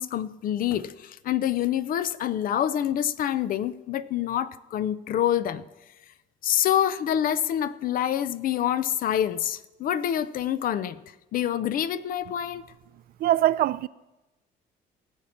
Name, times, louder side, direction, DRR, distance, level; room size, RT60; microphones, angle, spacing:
voice 1, 0.0-5.6 6.4-11.0 11.3-12.6, left 10 dB, 55° left, 0.6 m, -26 dB
voice 2, 13.2-13.9, right 13 dB, 60° right, 0.4 m, -22 dB
18.5 x 7.5 x 4.3 m
cardioid pair, 110°, 17 cm